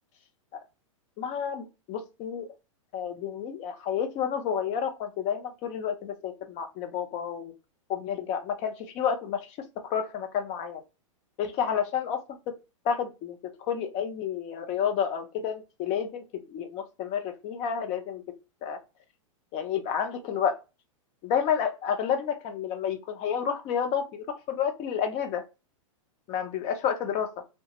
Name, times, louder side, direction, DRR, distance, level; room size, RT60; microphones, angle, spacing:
voice 1, 1.2-2.5 2.9-7.5 7.9-9.5 9.8-10.8 11.4-12.2 12.8-13.4 13.7-16.2 16.5-18.2 18.6-18.8 19.5-20.6 21.2-25.4 26.3-27.3, left 8 dB, 40° left, 0.7 m, -30 dB
2.8 x 2.3 x 2.9 m
hypercardioid pair, 125°, 17 cm